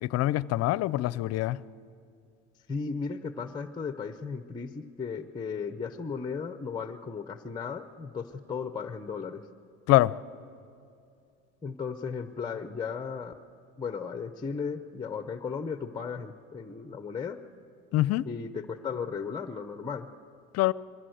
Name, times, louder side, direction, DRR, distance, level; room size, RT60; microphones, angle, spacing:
voice 1, 0.0-1.6 9.9-10.1 17.9-18.3 20.5-20.7, left 16 dB, 50° left, 0.5 m, -24 dB
voice 2, 2.7-9.4 11.6-13.3 13.8-17.4 18.2-20.1, left 5 dB, 15° left, 0.7 m, -35 dB
22.0 x 15.5 x 7.9 m
cardioid pair, 130°, 31 cm